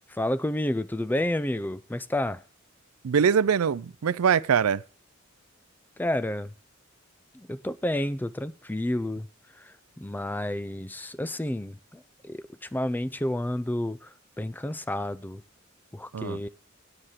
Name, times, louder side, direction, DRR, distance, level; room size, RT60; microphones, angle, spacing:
voice 1, 0.1-2.4 6.0-6.5 7.3-9.3 9.6-15.4 15.9-16.5, left 1 dB, 10° left, 0.4 m, -30 dB
voice 2, 3.0-4.8 16.1-16.4, right 7 dB, 90° right, 0.4 m, -23 dB
8.9 x 8.0 x 7.3 m
head